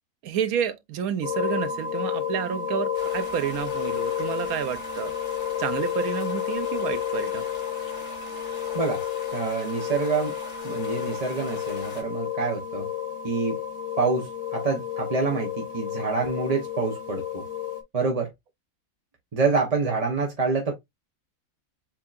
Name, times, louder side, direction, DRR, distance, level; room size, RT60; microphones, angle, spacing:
voice 1, 0.2-5.1 5.6-7.4, right 8 dB, 85° right, 1.2 m, -29 dB
sound 1, 1.2-17.8, left 9 dB, 30° left, 1.1 m, -31 dB
sound 2, 2.9-12.0, left 3 dB, 50° left, 1.9 m, -44 dB
voice 2, 9.3-10.3 10.6-12.9 13.2-13.6 14.0-17.4 17.9-18.3 19.3-20.7, right 4 dB, 30° right, 0.8 m, -26 dB
7.0 x 2.8 x 2.5 m
omnidirectional pair, 1.5 m